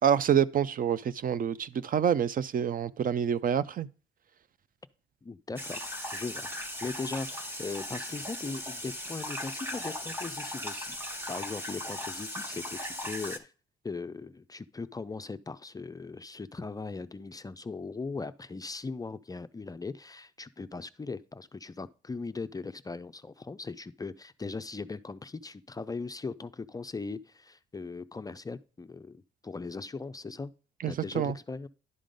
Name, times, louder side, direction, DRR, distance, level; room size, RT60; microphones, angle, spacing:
voice 1, 0.0-3.9 30.8-31.4, right 8 dB, 45° right, 0.4 m, -27 dB
voice 2, 5.2-11.0 11.3-13.5 13.8-30.5 30.9-31.7, left 4 dB, 20° left, 0.4 m, -39 dB
sound 1, 5.6-13.4, left 1 dB, 10° right, 1.2 m, -38 dB
11.0 x 3.8 x 5.1 m
cardioid pair, 90°, 20 cm